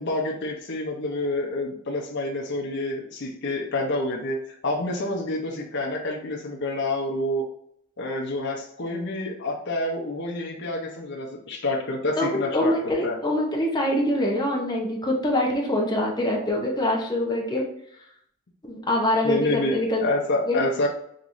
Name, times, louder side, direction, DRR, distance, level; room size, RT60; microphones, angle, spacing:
voice 1, 0.0-7.5 8.0-12.7 13.0-13.2 19.2-20.9, left 2 dB, 60° left, -1 dB, 0.8 m, -28 dB
voice 2, 12.2-17.6 18.6-20.0 20.5-20.6, left 1 dB, 20° left, -1 dB, 1.0 m, -24 dB
5.3 x 3.0 x 2.6 m, 0.71 s
head